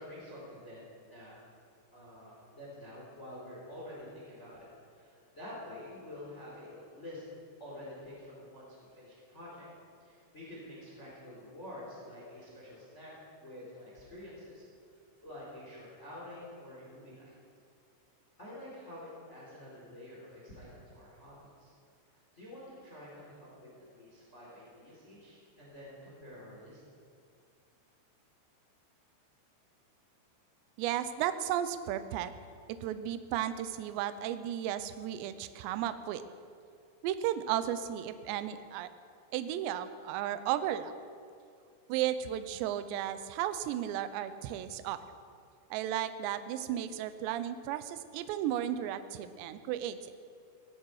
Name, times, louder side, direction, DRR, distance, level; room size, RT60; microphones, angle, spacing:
voice 1, 0.0-1.4 1.9-7.2 7.6-9.7 10.0-13.1 13.4-14.6 15.2-17.3 18.4-21.7 22.1-26.8, left 1 dB, 15° left, -5 dB, 3.5 m, -48 dB
voice 2, 30.8-32.3 32.8-36.2 37.0-38.9 39.3-40.9 41.9-45.0 45.7-50.1, right 11 dB, 80° right, 11 dB, 2.6 m, -34 dB
17.5 x 16.0 x 4.8 m, 2.3 s
omnidirectional pair, 5.7 m